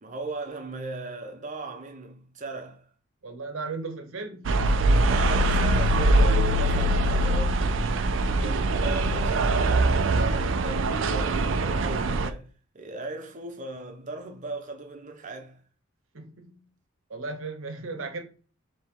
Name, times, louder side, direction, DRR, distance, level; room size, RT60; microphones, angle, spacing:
voice 1, 0.0-2.9 5.0-7.6 8.1-15.6, right 2 dB, 40° right, 0.8 m, -38 dB
voice 2, 3.2-4.7 16.1-16.6 17.1-18.2, right 3 dB, 85° right, 1.0 m, -36 dB
sound 1, 4.4-12.3, right 2 dB, 65° right, 0.5 m, -23 dB
3.6 x 3.0 x 4.5 m
head